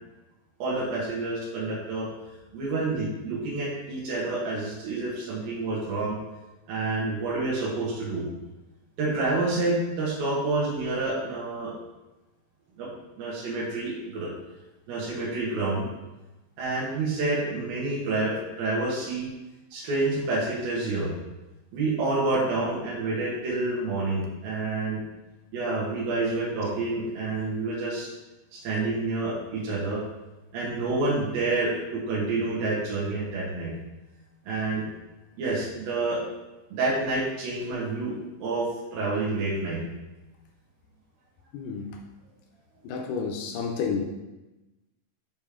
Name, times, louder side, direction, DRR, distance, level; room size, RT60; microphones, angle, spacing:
voice 1, 0.6-2.1 2.5-6.2 6.7-8.2 9.0-11.7 12.8-12.9 13.2-14.3 14.9-15.9 16.6-19.3 19.7-21.1 21.7-25.0 25.5-28.1 28.5-30.0 30.5-33.7 34.5-34.8 35.4-36.2 36.7-39.8, right 2 dB, 75° right, -7 dB, 3.3 m, -28 dB
voice 2, 41.5-42.0 42.8-44.0, left 5 dB, 75° left, 2 dB, 2.1 m, -30 dB
7.4 x 5.0 x 3.6 m, 1.1 s
omnidirectional pair, 4.3 m